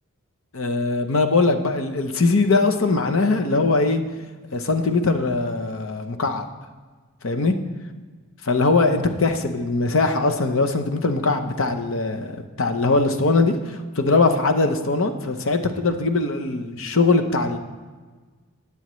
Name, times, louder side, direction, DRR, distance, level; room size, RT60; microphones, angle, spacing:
voice 1, 0.5-4.0 4.5-6.5 7.2-7.5 8.4-17.6, left 3 dB, 65° left, 6 dB, 0.8 m, -21 dB
19.0 x 7.1 x 3.1 m, 1.4 s
head